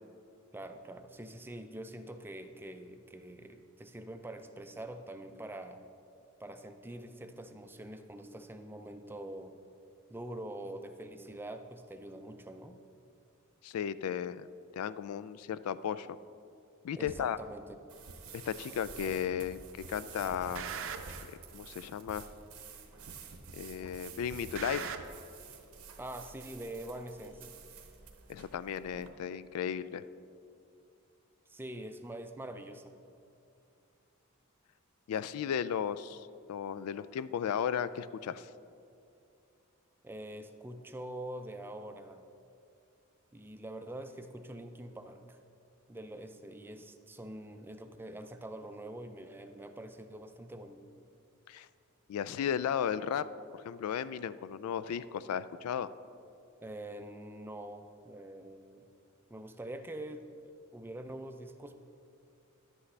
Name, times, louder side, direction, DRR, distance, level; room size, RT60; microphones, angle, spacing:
voice 1, 0.5-5.8 6.4-9.6 10.1-12.8 16.9-17.8 26.0-27.5 31.5-33.0 40.0-42.3 43.3-45.4 45.9-50.8 56.6-58.9 59.3-61.8, right 1 dB, 10° right, 7 dB, 0.4 m, -45 dB
voice 2, 13.6-14.5 14.7-16.1 16.8-17.4 18.3-19.6 19.9-20.7 21.3-22.2 23.5-24.9 28.3-30.0 35.1-38.5 51.5-51.7 52.1-53.3 53.6-55.9, left 8 dB, 85° left, 15 dB, 0.3 m, -35 dB
sound 1, 17.1-17.2 18.1-18.2 19.1-19.5 19.8-21.3 22.1-22.2 23.1-23.5 23.8-25.0, right 6 dB, 65° right, 0.6 m, -42 dB
sound 2, 17.9-29.1, right 6 dB, 85° right, 0.9 m, -51 dB
11.0 x 8.3 x 3.3 m, 2.6 s
head